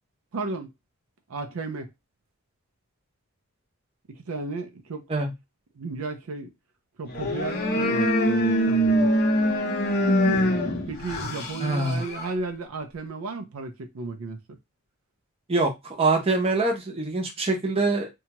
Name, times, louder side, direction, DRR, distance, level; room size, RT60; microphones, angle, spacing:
voice 1, 0.3-0.7 1.3-1.9 4.1-5.0 5.8-6.5 7.0-9.1 9.8-10.4 10.9-14.4, right 3 dB, 75° right, 0.5 m, -34 dB
sound 1, 7.1-12.3, equal, 45° left, 0.6 m, -24 dB
voice 2, 11.6-12.0 15.5-18.1, right 3 dB, 25° right, 0.6 m, -24 dB
2.7 x 2.2 x 2.8 m
head